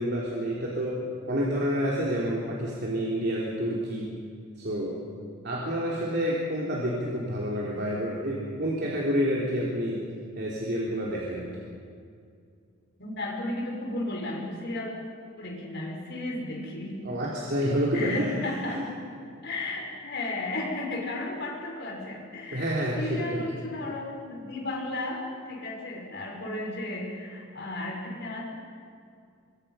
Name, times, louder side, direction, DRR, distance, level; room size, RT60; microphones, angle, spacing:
voice 1, 0.0-4.2 4.6-5.0 5.4-10.1 10.4-11.5 17.0-18.8 22.5-23.4, equal, 50° right, -4 dB, 3.3 m, -29 dB
voice 2, 13.0-14.9 15.4-17.0 17.9-18.9 19.4-28.4, left 2 dB, 55° left, -1 dB, 5.7 m, -34 dB
25.0 x 24.0 x 5.7 m, 2.3 s
head